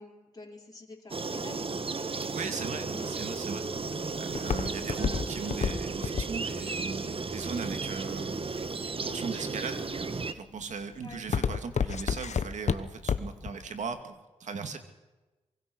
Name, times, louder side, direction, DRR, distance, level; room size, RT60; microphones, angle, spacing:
voice 1, 0.0-1.9 2.9-3.3 11.0-11.2, left 3 dB, 30° left, -1 dB, 4.4 m, -47 dB
sound 1, 1.1-10.3, right 4 dB, 50° right, 1.6 m, -34 dB
voice 2, 2.3-3.9 4.2-8.7 9.0-9.8 10.2-14.8, right 5 dB, 80° right, 7 dB, 2.5 m, -38 dB
Walk footsteps, 3.2-8.3 8.9-9.4 9.9-10.3 10.6-13.5 13.8-13.9, left 6 dB, 70° left, 1.2 m, -30 dB
24.5 x 23.0 x 6.3 m, 1.1 s
cardioid pair, 55°, 12 cm